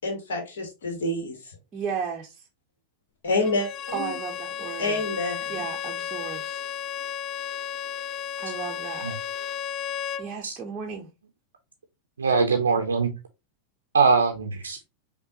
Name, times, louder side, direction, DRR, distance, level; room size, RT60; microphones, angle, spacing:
voice 1, 0.0-1.4 3.2-4.2 4.8-5.6, left 2 dB, 60° left, 1.2 m, -28 dB
voice 2, 1.7-2.4 3.9-5.0 5.5-6.6 8.4-9.1 10.2-11.1, right 6 dB, 25° right, 0.6 m, -34 dB
Bowed string instrument, 3.4-10.3, left 9 dB, 30° left, 0.3 m, -33 dB
voice 3, 12.2-13.1 13.9-14.8, right 5 dB, 70° right, 0.5 m, -22 dB
5.4 x 2.2 x 2.7 m
figure-of-eight pair, 90°, 0 cm